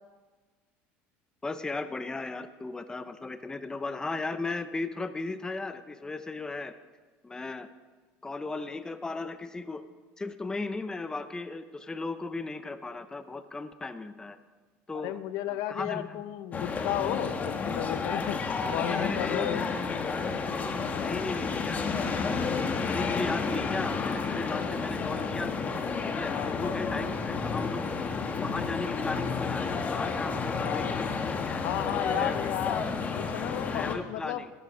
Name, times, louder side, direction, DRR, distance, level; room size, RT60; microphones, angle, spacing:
voice 1, 1.4-6.7 7.2-7.7 8.2-9.8 10.2-14.4 14.9-15.2 15.7-16.2 17.8-17.9 18.9-20.2 20.9-21.9 22.7-25.7 26.0-28.1 28.4-31.6 32.1-32.4 33.7-34.5, left 3 dB, 10° left, 11 dB, 0.6 m, -36 dB
voice 2, 14.9-18.4 18.7-19.7 20.9-21.3 26.3-26.8 30.6-31.1 31.6-32.9 33.1-34.4, left 13 dB, 75° left, 13 dB, 0.6 m, -34 dB
sound 1, 16.5-33.9, left 4 dB, 30° left, 1.2 m, -31 dB
12.5 x 11.0 x 4.9 m, 1.4 s
supercardioid pair, 120°, 6 cm